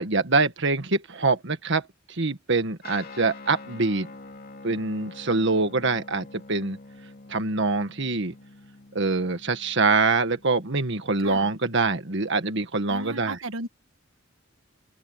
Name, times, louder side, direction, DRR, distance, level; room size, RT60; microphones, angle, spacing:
voice 1, 0.0-4.1 4.6-6.8 7.3-8.3 8.9-13.4, right 3 dB, 60° right, 1.7 m, -24 dB
Guitar, 2.8-12.6, left 3 dB, 50° left, 2.9 m, -47 dB
voice 2, 11.2-11.5 12.9-13.7, right 2 dB, 85° right, 1.6 m, -35 dB
open air
head